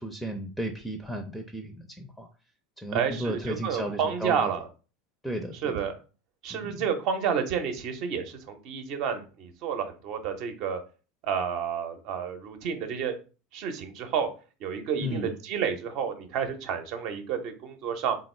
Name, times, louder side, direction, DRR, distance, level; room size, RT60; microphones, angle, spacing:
voice 1, 0.0-2.3 2.8-4.5 5.2-5.8 6.5-6.9 15.0-15.4, equal, 5° left, 5 dB, 0.5 m, -34 dB
voice 2, 2.9-4.7 5.6-6.0 6.4-10.8 11.2-13.1 13.5-14.3 14.6-18.2, right 7 dB, 55° right, 6 dB, 0.7 m, -30 dB
3.6 x 2.3 x 3.2 m, 0.35 s
hypercardioid pair, 75°, 0 cm